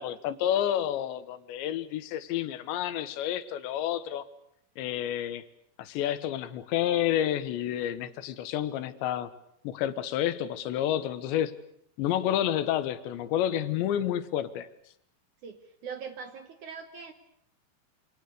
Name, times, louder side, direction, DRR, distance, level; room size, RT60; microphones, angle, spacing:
voice 1, 0.0-4.2 4.8-5.4 5.8-9.3 9.7-11.6 12.0-14.7, left 11 dB, 85° left, 13 dB, 3.6 m, -29 dB
voice 2, 15.4-17.1, right 6 dB, 60° right, 9 dB, 2.2 m, -41 dB
27.5 x 26.0 x 6.7 m, 0.69 s
omnidirectional pair, 5.0 m